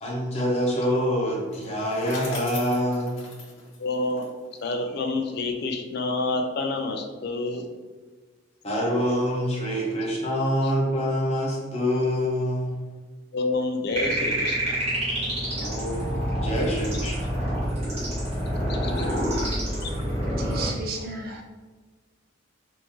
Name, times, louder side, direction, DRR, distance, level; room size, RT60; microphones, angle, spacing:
voice 1, 0.0-3.2 8.6-12.8 15.6-17.1, equal, 35° left, -4 dB, 0.8 m, -26 dB
Bicycle, 1.5-4.7, left 2 dB, 85° left, 0.9 m, -40 dB
voice 2, 3.8-4.3 4.6-7.7 13.3-14.8 15.5-15.6 16.1-16.3 18.7-19.1 19.8-19.9, left 2 dB, 55° left, 4 dB, 0.4 m, -28 dB
sound 1, 13.9-20.7, right 1 dB, 35° right, 1.0 m, -27 dB
voice 3, 20.4-21.4, right 3 dB, 50° right, 2 dB, 0.5 m, -33 dB
3.6 x 2.7 x 3.0 m, 1.4 s
head